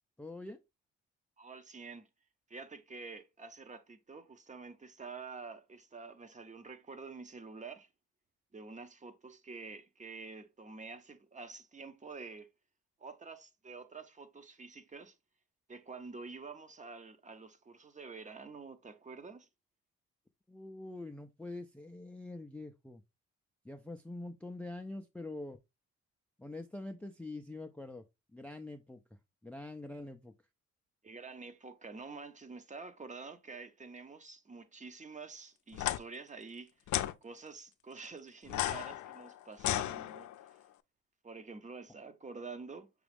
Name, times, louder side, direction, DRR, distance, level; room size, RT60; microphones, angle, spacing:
voice 1, 0.2-0.6 20.5-23.0 23.6-25.6 26.4-28.0 28.3-29.0 29.4-30.3, left 2 dB, 5° left, 0.4 m, -44 dB
voice 2, 1.4-2.1 2.5-7.9 8.5-12.5 13.0-15.2 15.7-19.5 31.0-40.6 41.2-42.9, right 4 dB, 25° right, 0.7 m, -48 dB
sound 1, 35.7-36.0 36.9-37.1 38.5-40.5, left 13 dB, 70° left, 0.5 m, -34 dB
6.1 x 2.3 x 3.4 m
cardioid pair, 90°, 30 cm